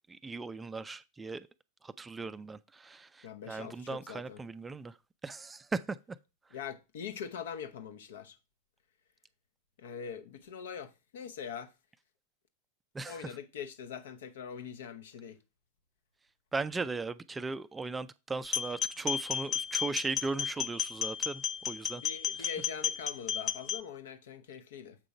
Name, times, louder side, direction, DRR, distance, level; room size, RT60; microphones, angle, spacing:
voice 1, 0.1-1.4 1.8-4.9 5.2-6.0 13.0-13.1 16.5-21.4 21.7-22.0, right 3 dB, 10° right, 0.4 m, -37 dB
voice 2, 3.2-4.4 6.5-8.3 9.8-11.7 13.1-15.4 21.9-25.0, left 7 dB, 60° left, 0.8 m, -43 dB
sound 1, 18.4-23.8, left 9 dB, 25° left, 0.7 m, -33 dB
7.4 x 5.0 x 4.8 m
figure-of-eight pair, 90°, 0 cm